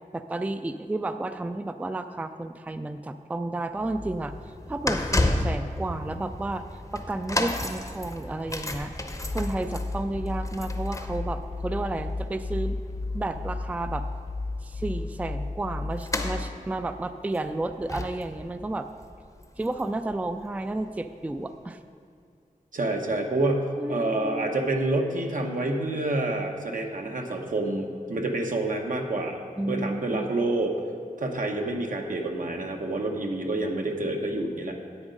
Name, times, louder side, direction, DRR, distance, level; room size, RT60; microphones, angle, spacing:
voice 1, 0.1-4.3 4.7-6.6 6.9-8.9 9.3-12.8 13.1-14.0 14.6-18.9 19.6-21.8 23.8-24.5 29.6-30.3, right 2 dB, 10° right, 9 dB, 0.3 m, -32 dB
sound 1, 3.8-20.1 20.4-20.6 21.4-21.5, left 1 dB, 25° left, 0.7 m, -33 dB
sound 2, 9.2-16.6, left 3 dB, 50° left, 0.9 m, -34 dB
voice 2, 22.7-29.4 29.7-30.7 31.2-34.8, right 2 dB, 70° right, 2 dB, 1.0 m, -28 dB
9.7 x 8.1 x 5.2 m, 2.2 s
wide cardioid pair, 85°, 14 cm